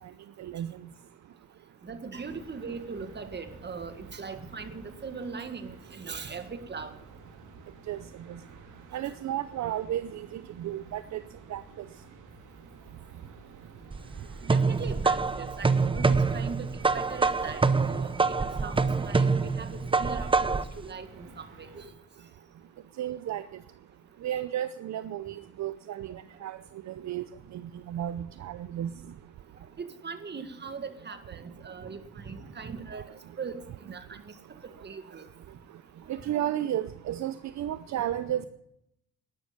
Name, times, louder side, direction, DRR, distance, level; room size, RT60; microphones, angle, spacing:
voice 1, 0.4-0.7 7.9-8.0 8.3-8.4 8.9-11.2 11.5-11.6 23.0-23.4 24.2-26.6 26.9-27.3 27.5-27.6 27.9-28.9 36.1-38.5, right 11 dB, 65° right, 12 dB, 0.7 m, -33 dB
voice 2, 1.8-6.9 14.4-19.7 20.0-21.9 29.8-33.0 33.4-33.6 33.9-34.0 34.8-35.3 36.3-36.5, right 5 dB, 35° right, 8 dB, 1.9 m, -40 dB
sound 1, 2.1-21.9, right 3 dB, 85° right, 2.7 m, -52 dB
sound 2, 13.9-20.8, right 4 dB, 15° right, 0.7 m, -26 dB
12.0 x 11.0 x 7.3 m, 0.78 s
cardioid pair, 90°, 30 cm